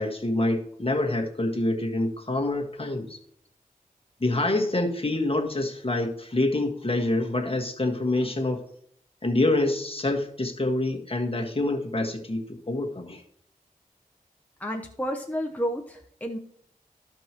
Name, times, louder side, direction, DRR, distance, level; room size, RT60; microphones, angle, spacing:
voice 1, 0.0-3.2 4.2-8.6 9.2-13.2, left 2 dB, 40° left, 2 dB, 1.7 m, -26 dB
voice 2, 14.6-16.4, equal, 10° left, 2 dB, 0.9 m, -31 dB
14.5 x 5.3 x 3.0 m, 0.65 s
cardioid pair, 45°, 15 cm